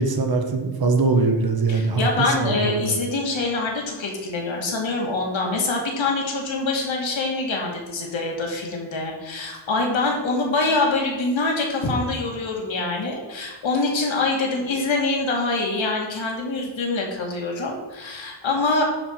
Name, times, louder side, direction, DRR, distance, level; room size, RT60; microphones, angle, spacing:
voice 1, 0.0-2.9, right 3 dB, 50° right, 4 dB, 1.5 m, -22 dB
voice 2, 1.7-18.8, left 3 dB, 75° left, 0 dB, 2.6 m, -25 dB
11.0 x 4.9 x 6.0 m, 1.3 s
wide cardioid pair, 105°, 46 cm